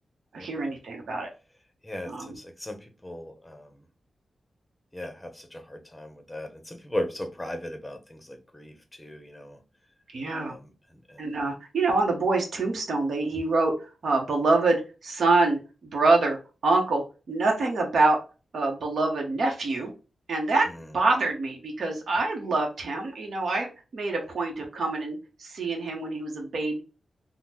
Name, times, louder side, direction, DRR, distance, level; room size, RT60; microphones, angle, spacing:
voice 1, 0.3-1.3 2.1-2.4 10.1-10.6 11.2-18.2 18.5-19.9 20.3-20.7 20.9-26.8, right 3 dB, 70° right, 1 dB, 0.8 m, -26 dB
voice 2, 1.8-3.7 4.9-9.6 10.3-11.2 20.7-20.9, left 1 dB, 10° left, 6 dB, 0.7 m, -37 dB
3.6 x 2.0 x 2.8 m, 0.32 s
wide cardioid pair, 95°, 0 cm